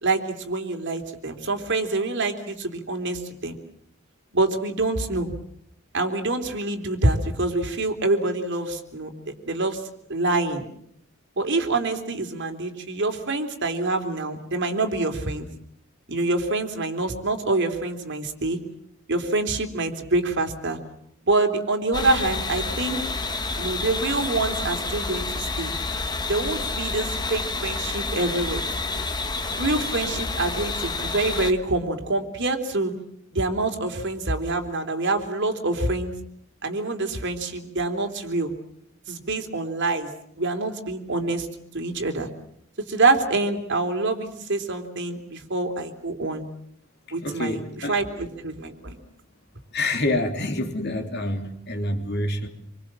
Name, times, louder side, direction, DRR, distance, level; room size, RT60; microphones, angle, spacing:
voice 1, 0.0-3.6 4.3-5.3 5.9-9.8 10.1-10.7 11.4-15.5 16.1-18.6 19.1-20.8 21.2-23.0 23.6-25.7 26.3-28.6 29.6-32.9 33.3-36.1 36.6-38.5 39.1-40.1 40.4-41.5 41.7-42.3 42.8-46.5 47.1-49.0, right 2 dB, 60° right, 3.4 m, -26 dB
sound 1, 21.9-31.5, left 3 dB, 20° left, 1.4 m, -29 dB
voice 2, 47.2-48.0 49.7-52.5, left 1 dB, 55° left, 3.3 m, -27 dB
27.0 x 24.5 x 7.6 m
head